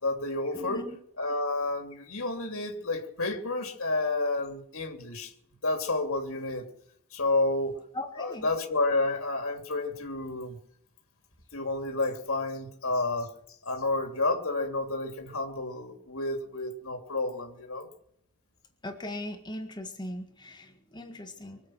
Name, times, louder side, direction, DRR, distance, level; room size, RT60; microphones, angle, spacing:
voice 1, 0.0-0.9 1.2-5.3 5.6-6.7 7.1-7.8 8.2-10.6 11.5-13.3 13.6-17.9, left 2 dB, 65° left, 3 dB, 3.0 m, -30 dB
voice 2, 0.5-1.0 7.9-8.5 18.8-21.6, left 1 dB, 20° left, 4 dB, 1.8 m, -39 dB
25.0 x 8.4 x 6.2 m, 0.70 s
head